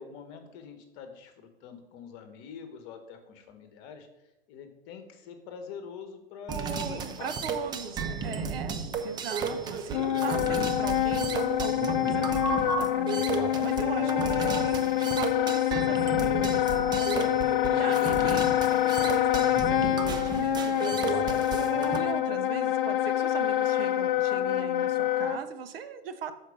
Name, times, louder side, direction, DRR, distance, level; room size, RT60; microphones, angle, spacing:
voice 1, 0.0-4.1 4.5-7.3 7.6-7.7 8.2-8.5 13.6-14.2, left 6 dB, 35° left, 7 dB, 1.1 m, -45 dB
sound 1, 6.5-22.0, right 5 dB, 15° right, 0.4 m, -33 dB
voice 2, 7.2-17.4 17.7-26.3, right 6 dB, 65° right, 10 dB, 0.8 m, -39 dB
Wind instrument woodwind instrument, 9.9-25.4, left 12 dB, 55° left, 0.5 m, -26 dB
6.5 x 4.5 x 5.1 m, 1.0 s
hypercardioid pair, 110°, 32 cm